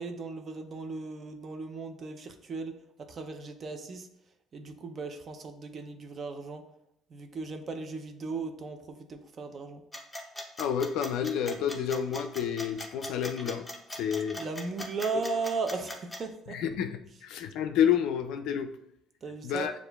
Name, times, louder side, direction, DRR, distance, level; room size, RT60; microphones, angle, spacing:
voice 1, 0.0-4.1 4.5-6.6 7.1-9.8 14.4-16.6 19.2-19.7, right 4 dB, 45° right, 7 dB, 0.5 m, -36 dB
sound 1, 9.9-16.2, left 1 dB, 5° left, 0.7 m, -40 dB
voice 2, 10.6-13.7 14.0-14.4 16.5-18.7 19.4-19.7, left 8 dB, 75° left, 7 dB, 0.3 m, -29 dB
6.5 x 2.4 x 2.3 m, 0.76 s
supercardioid pair, 90°, 0 cm